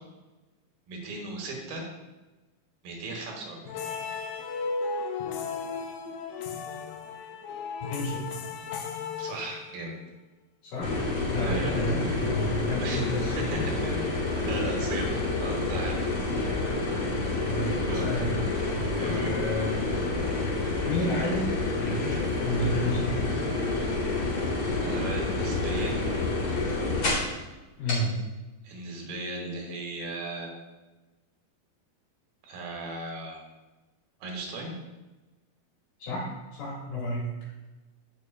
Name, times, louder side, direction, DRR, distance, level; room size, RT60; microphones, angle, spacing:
voice 1, 0.9-1.8 2.8-3.8 9.2-9.9 11.4-11.7 12.8-13.0 13.4-14.1 14.4-15.1 15.4-16.0 17.8-18.1 19.0-19.3 24.8-26.0 28.6-30.5 32.4-33.5 34.2-34.7, right 2 dB, 80° right, 0 dB, 2.9 m, -36 dB
sound 1, 3.7-9.9, left 5 dB, 80° left, 1.9 m, -35 dB
voice 2, 7.8-8.2 10.6-10.9 11.3-14.0 17.5-18.4 19.0-19.8 20.8-21.5 21.8-23.2 27.8-28.2 36.0-37.3, left 1 dB, 65° left, -6 dB, 3.5 m, -31 dB
sound 2, 10.8-27.4 27.9-28.0, left 3 dB, 40° left, 3.3 m, -28 dB
9.0 x 6.7 x 2.4 m, 1.1 s
omnidirectional pair, 4.3 m